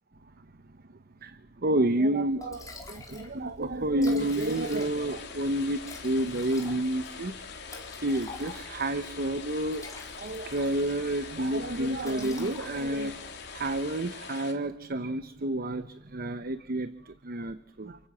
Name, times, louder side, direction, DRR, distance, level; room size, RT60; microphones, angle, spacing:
voice 1, 1.6-7.3 8.0-9.8 10.2-13.2 13.5-18.0, right 1 dB, 55° right, 12 dB, 1.0 m, -29 dB
Liquid, 2.0-2.1 2.4-3.3 3.6-3.7 3.9-5.2 5.8-8.9 9.5-11.1 11.4-11.6 12.0-13.0, left 3 dB, 20° left, 4.7 m, -46 dB
sound 1, 2.5-13.8, right 1 dB, 35° right, 2.3 m, -53 dB
sound 2, 4.2-14.5, left 5 dB, 60° left, 3.4 m, -43 dB
29.0 x 16.0 x 7.4 m, 0.82 s
head